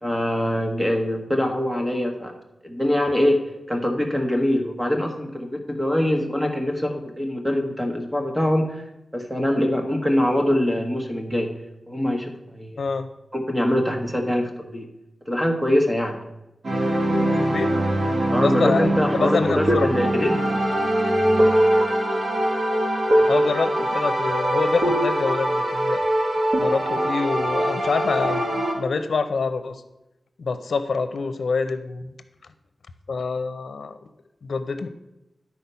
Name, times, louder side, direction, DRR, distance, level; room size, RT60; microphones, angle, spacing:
voice 1, 0.0-2.3 2.6-3.4 3.7-8.8 9.1-11.5 11.9-12.8 13.3-14.9 15.3-16.2 18.3-20.5, left 1 dB, 10° right, 3 dB, 1.2 m, -23 dB
voice 2, 12.8-13.1 17.4-17.7 18.4-19.9 23.2-26.0 26.6-29.8 30.4-32.1 33.1-34.1 34.4-34.9, left 4 dB, 80° left, 10 dB, 0.6 m, -26 dB
sound 1, 16.6-28.7, right 1 dB, 65° right, 2.1 m, -22 dB
11.0 x 4.3 x 5.6 m, 0.94 s
wide cardioid pair, 125°, 0 cm